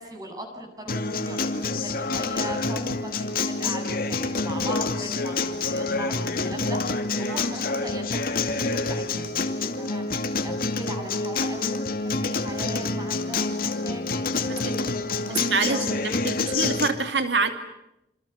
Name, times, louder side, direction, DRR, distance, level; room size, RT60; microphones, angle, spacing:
voice 1, 0.0-5.4 5.6-15.8, right 1 dB, 20° right, 4 dB, 7.8 m, -39 dB
Acoustic guitar, 0.9-16.9, left 3 dB, 55° left, 2.4 m, -27 dB
voice 2, 15.3-17.5, right 4 dB, 80° right, 7 dB, 2.7 m, -26 dB
28.0 x 27.5 x 7.0 m, 0.85 s
head